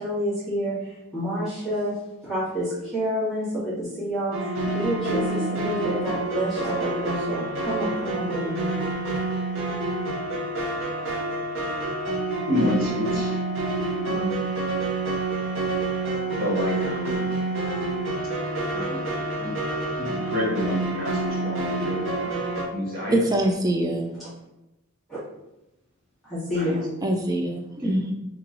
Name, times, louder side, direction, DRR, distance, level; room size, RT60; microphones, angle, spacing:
voice 1, 0.0-1.9 2.2-9.1 24.2-24.3 25.1-25.2 26.2-26.9, equal, ahead, -13 dB, 1.3 m, -29 dB
sound 1, 4.3-22.7, right 2 dB, 60° right, 0.8 m, -28 dB
voice 2, 12.5-13.4 13.9-14.5 16.2-17.3 18.7-19.0 19.4-19.5 20.0-22.4 22.7-23.2 26.5-26.8 27.8-27.9, left 1 dB, 40° right, -5 dB, 1.2 m, -29 dB
voice 3, 23.1-24.1 27.0-28.1, right 1 dB, 15° right, 3 dB, 0.3 m, -24 dB
3.0 x 2.9 x 3.7 m, 0.92 s
head